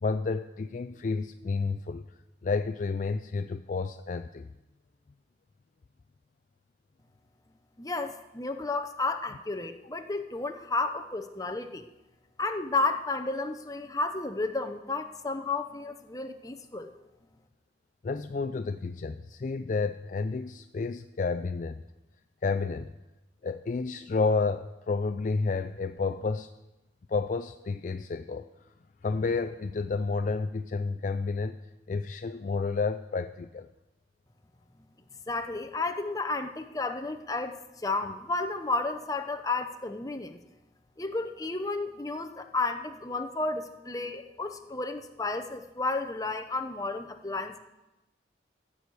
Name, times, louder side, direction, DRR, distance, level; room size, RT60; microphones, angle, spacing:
voice 1, 0.0-2.0 2.4-4.5 18.0-21.8 22.4-22.9 23.4-26.5 27.1-28.5 29.0-31.6 31.9-33.7, left 4 dB, 45° left, 10 dB, 0.4 m, -30 dB
voice 2, 7.8-11.9 12.4-16.9 35.3-40.4 41.0-47.6, left 3 dB, 20° left, 7 dB, 0.8 m, -32 dB
15.0 x 6.3 x 8.3 m, 1.0 s
head